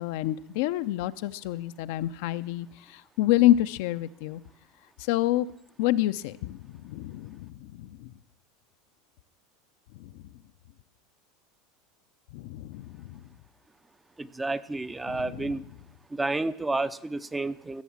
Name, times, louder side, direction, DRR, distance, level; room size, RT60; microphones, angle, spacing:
voice 1, 0.0-4.4 5.0-5.5 5.8-8.1 9.9-10.1 12.3-13.2 15.1-15.7, left 15 dB, 70° left, 12 dB, 0.5 m, -28 dB
voice 2, 14.2-15.6 16.1-17.8, right 2 dB, 15° right, 14 dB, 0.6 m, -30 dB
16.0 x 7.2 x 7.2 m, 0.76 s
hypercardioid pair, 100°, 0 cm